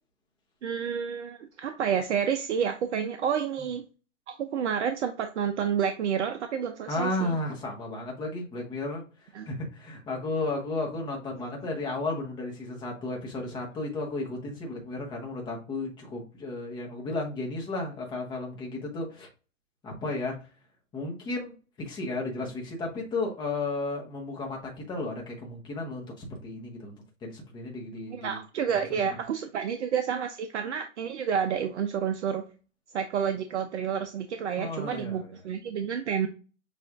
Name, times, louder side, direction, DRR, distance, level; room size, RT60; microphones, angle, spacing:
voice 1, 0.6-3.8 4.3-7.4 9.3-9.5 28.1-32.4 32.9-36.3, right 7 dB, 55° right, 7 dB, 0.6 m, -29 dB
voice 2, 6.9-9.0 9.5-19.3 19.8-20.4 20.9-21.5 21.8-28.4 34.6-35.3, left 2 dB, 10° left, 0 dB, 0.8 m, -33 dB
6.6 x 2.5 x 2.4 m, 0.35 s
hypercardioid pair, 140°, 42 cm